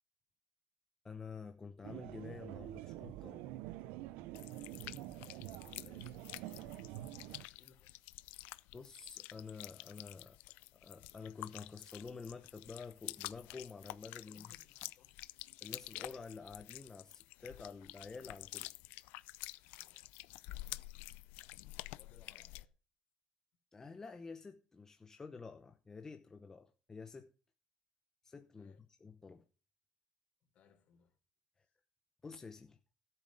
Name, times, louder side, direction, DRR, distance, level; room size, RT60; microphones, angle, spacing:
voice 1, 1.0-3.4 8.7-10.4 10.7-14.5 15.6-18.7 23.7-27.3 28.2-28.7 29.0-29.4 32.2-32.8, left 4 dB, 20° left, 0.9 m, -49 dB
sound 1, 1.8-7.5, right 15 dB, 90° right, 0.5 m, -47 dB
sound 2, 4.3-22.7, left 20 dB, 90° left, 0.5 m, -49 dB
voice 2, 4.7-6.8 7.5-8.0 14.2-15.1 19.7-20.1 22.0-22.7 28.6-28.8 30.5-31.2, left 7 dB, 55° left, 3.6 m, -66 dB
13.0 x 7.8 x 5.2 m
cardioid pair, 130°, 3 cm